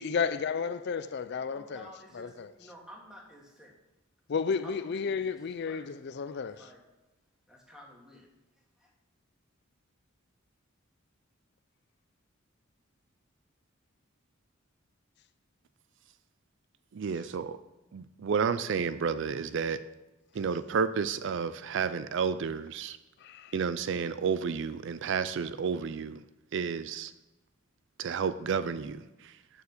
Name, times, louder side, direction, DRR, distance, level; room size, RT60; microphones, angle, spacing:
voice 1, 0.0-1.9 2.1-2.5 4.3-6.6 23.2-23.5, left 5 dB, 55° left, 0.4 m, -32 dB
voice 2, 0.7-3.8 4.6-5.8 6.2-6.8 7.5-8.9, equal, 5° right, 2.0 m, -53 dB
voice 3, 16.9-17.6 17.9-19.8 20.4-23.0 23.5-26.2 26.5-27.1 28.0-29.0, right 6 dB, 60° right, 0.4 m, -31 dB
9.0 x 6.9 x 6.6 m
head